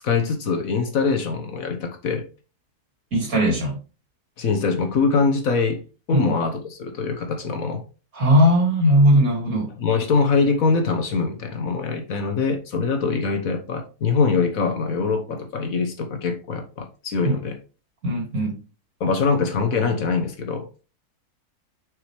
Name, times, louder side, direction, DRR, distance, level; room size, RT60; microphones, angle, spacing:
voice 1, 0.0-2.3 4.4-5.8 6.1-7.8 9.8-17.6 19.0-20.7, left 4 dB, 60° left, 1.5 m, -23 dB
voice 2, 3.1-3.8 6.1-6.3 8.1-9.7 17.2-17.3 18.0-18.6, equal, 60° right, 2.9 m, -18 dB
6.4 x 5.5 x 3.2 m
omnidirectional pair, 1.7 m